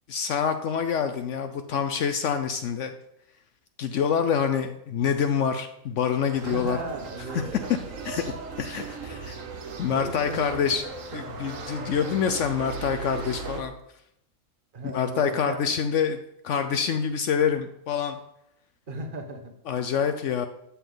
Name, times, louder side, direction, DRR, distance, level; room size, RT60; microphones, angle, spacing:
voice 1, 0.1-2.9 3.8-6.8 8.0-9.3 9.8-10.8 11.1-13.7 14.8-16.2 16.4-18.2 19.7-20.5, left 7 dB, 70° left, 8 dB, 0.9 m, -26 dB
sound 1, 6.3-13.6, right 4 dB, 80° right, 1.5 m, -37 dB
voice 2, 6.4-7.6 9.1-9.4 9.8-10.7 14.7-15.6 18.9-19.5, right 2 dB, 40° right, 6 dB, 1.3 m, -36 dB
12.5 x 7.1 x 3.9 m, 0.80 s
omnidirectional pair, 1.4 m